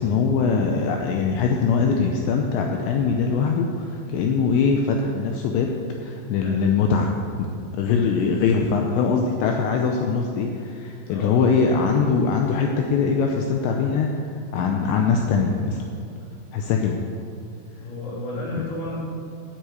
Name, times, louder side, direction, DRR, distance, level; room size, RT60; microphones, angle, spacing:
voice 1, 0.0-5.7 6.0-7.1 7.4-7.5 7.7-14.1 14.5-15.8 16.5-17.0, left 5 dB, 80° left, 2 dB, 2.7 m, -22 dB
voice 2, 11.1-11.4 17.8-19.0, left 2 dB, 55° left, -6 dB, 4.7 m, -32 dB
9.4 x 8.5 x 8.3 m, 2.7 s
omnidirectional pair, 5.6 m